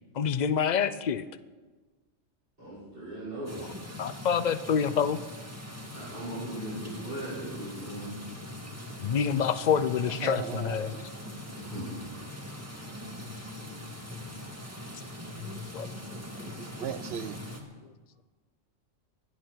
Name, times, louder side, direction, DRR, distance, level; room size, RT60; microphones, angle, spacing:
voice 1, 0.1-1.2 3.6-3.7 4.0-5.2 9.0-10.9 15.7-15.9 16.4-16.5, left 7 dB, 50° left, 14 dB, 0.5 m, -27 dB
voice 2, 2.6-3.6 5.9-8.2 11.5-12.0 12.9-13.1, right 1 dB, 45° right, -10 dB, 6.3 m, -38 dB
sound 1, 3.4-17.6, left 1 dB, 10° right, 1.9 m, -42 dB
voice 3, 10.2-11.0 16.6-17.4, right 8 dB, 60° right, 14 dB, 0.8 m, -37 dB
20.5 x 12.5 x 4.6 m, 1.3 s
omnidirectional pair, 1.3 m